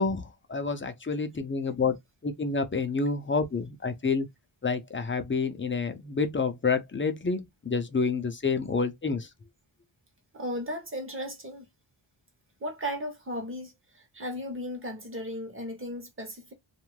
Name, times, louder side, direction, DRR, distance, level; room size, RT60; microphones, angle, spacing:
voice 1, 0.0-2.0 2.2-4.3 4.6-9.3, left 4 dB, 25° left, 0.4 m, -28 dB
voice 2, 10.3-11.7 12.6-16.5, equal, 25° right, 0.9 m, -36 dB
2.6 x 2.3 x 3.1 m
wide cardioid pair, 150°, 48 cm